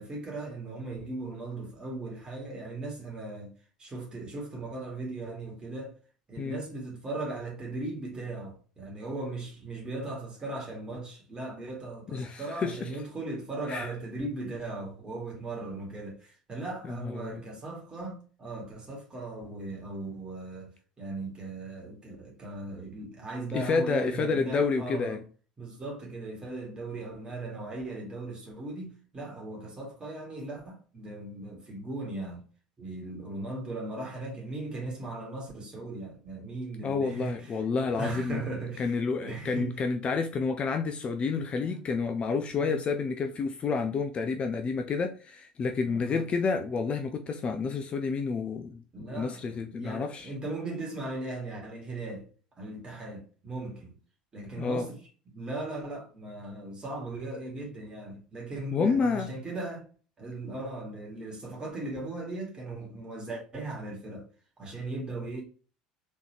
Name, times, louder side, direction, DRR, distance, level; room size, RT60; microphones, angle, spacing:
voice 1, 0.0-3.5 3.8-5.9 6.3-20.7 21.0-25.2 25.6-32.5 32.8-37.5 37.8-39.8 41.0-41.1 41.6-41.8 42.6-42.8 45.8-46.2 48.9-52.3 52.6-54.0 54.3-55.0 55.3-59.9 60.2-64.3 64.6-65.4, right 2 dB, 25° right, 2.1 m, -38 dB
voice 2, 12.1-12.9 13.7-13.9 16.8-17.4 23.5-25.2 36.8-38.4 38.8-50.3 54.6-54.9 58.7-59.3, left 4 dB, 30° left, 0.5 m, -29 dB
3.7 x 3.6 x 2.9 m
figure-of-eight pair, 65°, 4 cm